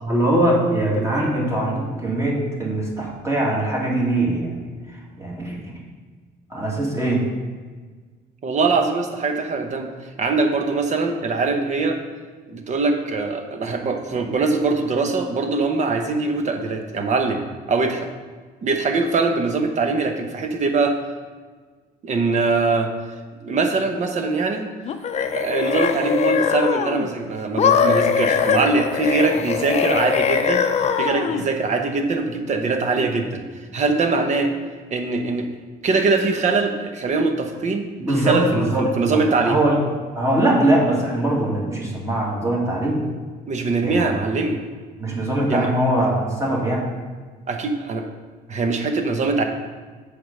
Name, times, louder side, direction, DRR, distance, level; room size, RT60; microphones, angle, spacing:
voice 1, 0.0-4.7 5.2-5.6 6.5-7.3 15.2-15.3 38.0-39.8 40.2-43.0 43.8-44.1 45.0-46.8, right 1 dB, 15° right, -3 dB, 2.2 m, -21 dB
voice 2, 8.4-9.9 10.2-12.0 12.5-17.4 17.7-18.1 18.6-20.9 22.0-22.9 23.4-24.7 25.2-30.6 31.0-33.4 33.7-34.5 34.9-35.5 35.8-39.6 43.5-44.6 45.5-45.7 47.5-48.0 48.5-49.4, right 3 dB, 45° right, 5 dB, 1.0 m, -22 dB
sound 1, 24.8-27.1 27.6-31.5, left 7 dB, 40° left, 0.6 m, -21 dB
7.8 x 5.2 x 5.4 m, 1.5 s
cardioid pair, 110°, 17 cm